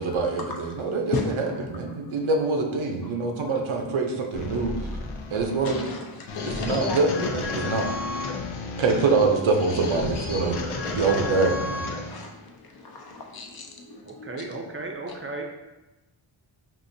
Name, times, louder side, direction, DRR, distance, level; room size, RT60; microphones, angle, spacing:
voice 1, 0.0-4.7 5.3-5.8 6.4-7.9 8.8-10.6 10.9-11.8, right 3 dB, 90° right, 3 dB, 0.7 m, -25 dB
sound 1, 4.3-12.3, left 3 dB, 90° left, 0.7 m, -32 dB
voice 2, 5.6-7.3 12.1-14.4, left 4 dB, 50° left, 1 dB, 0.6 m, -35 dB
voice 3, 14.1-15.4, right 3 dB, 30° right, 2 dB, 0.5 m, -35 dB
5.4 x 2.5 x 2.6 m, 1.1 s
wide cardioid pair, 110°, 47 cm